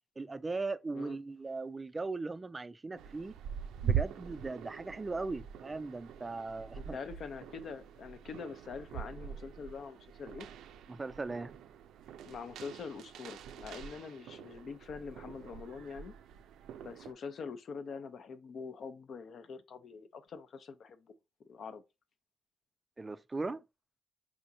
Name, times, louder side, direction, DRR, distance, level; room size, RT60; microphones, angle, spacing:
voice 1, 0.2-3.3 3.8-7.0 10.9-11.6 23.0-23.6, right 3 dB, 25° right, 0.3 m, -38 dB
sound 1, 3.0-17.1, right 8 dB, 85° right, 0.4 m, -42 dB
voice 2, 6.8-10.5 12.2-16.1 16.8-21.1 21.5-21.8, left 5 dB, 60° left, 0.6 m, -44 dB
5.0 x 3.4 x 2.7 m
cardioid pair, 90°, 0 cm